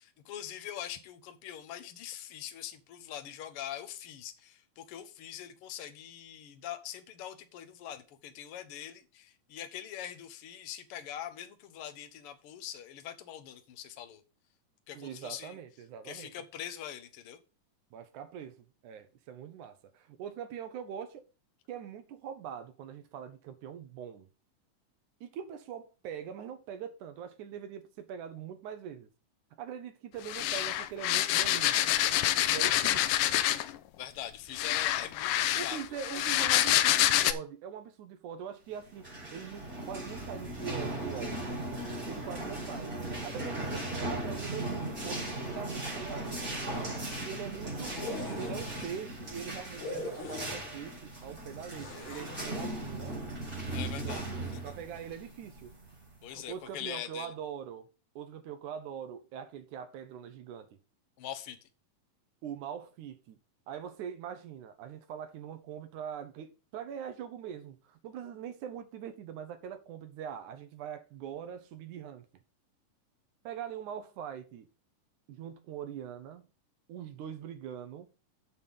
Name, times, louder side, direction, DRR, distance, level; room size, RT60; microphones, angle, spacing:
voice 1, 0.2-14.2 14.9-15.6 16.0-17.4 34.0-35.8 36.3-36.4 53.7-54.6 56.2-57.3 61.2-61.6, left 11 dB, 65° left, 1.4 m, -43 dB
voice 2, 14.9-16.3 17.9-18.6 18.8-21.2 21.7-24.3 25.2-29.1 29.6-31.9 32.5-33.1 35.6-41.4 42.1-42.9 43.2-46.5 47.2-48.0 48.4-53.2 53.9-55.7 56.3-57.9 58.2-60.7 62.4-63.4 63.7-72.3 73.4-74.7 75.3-76.5 76.9-78.1, right 8 dB, 75° right, 2.2 m, -42 dB
sound 1, 30.3-33.8 34.6-37.3, left 13 dB, 85° left, 2.2 m, -27 dB
sound 2, 38.9-56.3, right 1 dB, 15° right, 4.6 m, -38 dB
sound 3, 47.9-48.8 49.8-50.9 51.8-52.7, left 2 dB, 45° left, 2.3 m, -41 dB
7.8 x 6.6 x 5.3 m
omnidirectional pair, 3.8 m